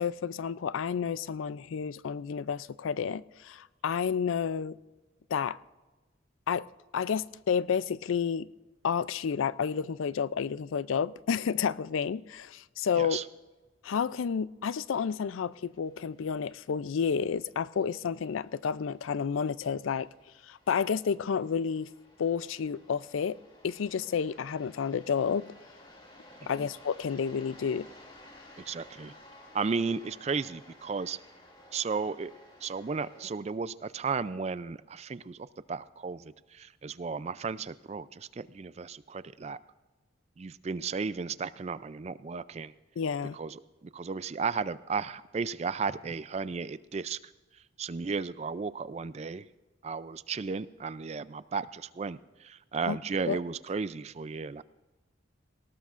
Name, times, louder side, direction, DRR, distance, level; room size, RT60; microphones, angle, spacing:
voice 1, 0.0-4.8 5.3-5.6 6.5-6.7 6.9-8.5 8.8-13.2 13.8-20.1 20.5-21.9 22.2-23.4 23.6-25.5 26.5-27.9 43.0-43.4 52.9-53.0 53.3-53.4, left 6 dB, 85° left, 0.4 m, -30 dB
sound 1, 15.5-33.3, left 1 dB, 25° left, 2.2 m, -56 dB
voice 2, 28.7-29.1 29.5-31.2 31.7-32.3 32.6-35.4 35.7-39.6 40.4-42.7 43.3-47.2 47.8-49.5 49.8-54.6, right 5 dB, 35° right, 0.3 m, -34 dB
18.5 x 18.5 x 2.5 m
head